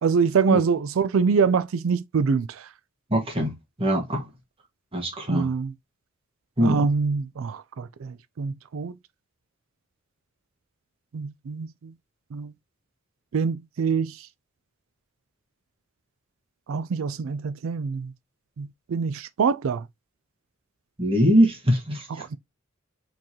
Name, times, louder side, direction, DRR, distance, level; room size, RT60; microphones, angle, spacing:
voice 1, 0.0-2.7 5.3-5.7 6.6-9.0 11.1-11.9 12.3-12.5 13.3-14.3 16.7-18.1 18.6-19.9 22.2-22.4, right 5 dB, 75° right, 0.4 m, -25 dB
voice 2, 3.1-3.5 3.8-4.3 4.9-5.5 6.6-6.9 21.0-22.2, equal, 25° right, 1.8 m, -22 dB
4.6 x 3.8 x 2.9 m
head